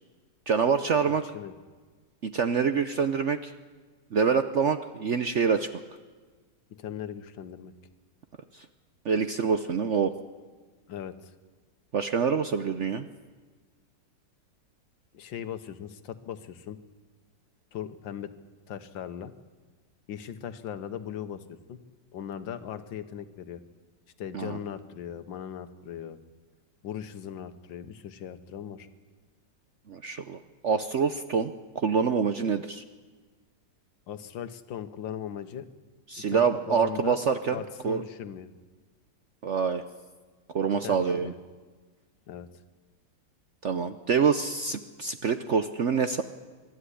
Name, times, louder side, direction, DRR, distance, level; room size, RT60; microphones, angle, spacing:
voice 1, 0.5-1.2 2.2-3.5 4.1-5.7 8.5-8.7 9.0-10.1 11.9-13.1 24.3-24.6 29.9-30.4 30.6-32.8 36.1-37.6 37.8-38.0 39.4-39.8 40.5-41.3 43.6-46.2, right 6 dB, 60° right, 9 dB, 0.8 m, -26 dB
voice 2, 1.2-1.5 6.8-7.7 10.9-11.3 15.1-16.8 17.7-18.3 18.7-19.3 20.1-21.4 21.7-21.8 22.1-23.6 24.2-26.2 26.8-28.9 34.1-35.7 36.3-37.2 37.5-38.5 40.8-41.4 42.3-42.5, left 9 dB, 85° left, 11 dB, 1.8 m, -38 dB
24.0 x 12.5 x 9.9 m, 1.4 s
omnidirectional pair, 2.0 m